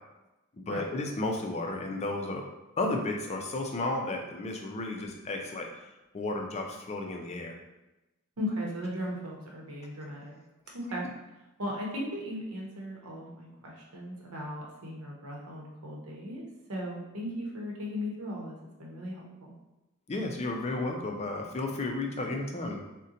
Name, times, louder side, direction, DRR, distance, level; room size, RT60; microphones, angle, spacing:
voice 1, 0.7-2.4 2.8-5.7 6.1-7.6 20.1-22.8, left 2 dB, 30° left, 2 dB, 0.4 m, -33 dB
voice 2, 8.4-10.4 10.7-11.1 11.6-19.5, equal, 85° right, -2 dB, 0.8 m, -37 dB
3.7 x 2.1 x 2.7 m, 0.99 s
head